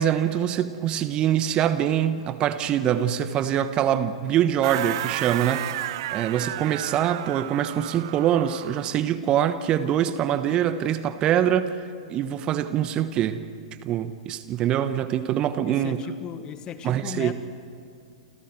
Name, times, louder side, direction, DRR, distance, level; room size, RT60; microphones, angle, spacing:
voice 1, 0.0-13.4 13.8-16.0 16.8-17.3, right 10 dB, 30° right, 12 dB, 1.2 m, -24 dB
sound 1, 4.6-9.0, right 15 dB, 50° right, 0.5 m, -33 dB
voice 2, 15.7-17.3, left 9 dB, 25° left, 10 dB, 1.7 m, -37 dB
30.0 x 27.5 x 4.7 m, 2.5 s
figure-of-eight pair, 105°, 3 cm